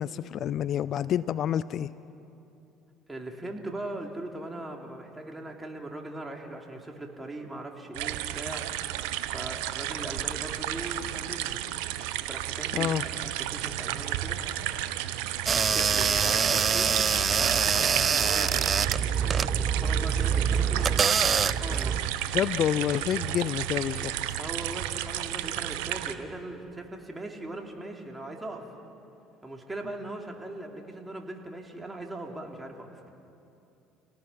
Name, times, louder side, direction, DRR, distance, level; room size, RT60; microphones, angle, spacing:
voice 1, 0.0-1.9 12.7-13.0 22.3-24.4, left 10 dB, 55° left, 17 dB, 0.5 m, -28 dB
voice 2, 3.1-8.7 9.3-11.6 12.3-14.4 15.5-17.0 17.4-18.9 19.6-21.2 21.6-22.0 24.4-28.7 29.4-32.9, right 1 dB, 15° right, 1 dB, 3.3 m, -40 dB
sound 1, 7.9-26.1, right 13 dB, 85° right, 0.9 m, -32 dB
sound 2, 15.5-22.1, right 6 dB, 35° right, 0.5 m, -25 dB
30.0 x 18.5 x 5.9 m, 2.7 s
supercardioid pair, 80°, 0 cm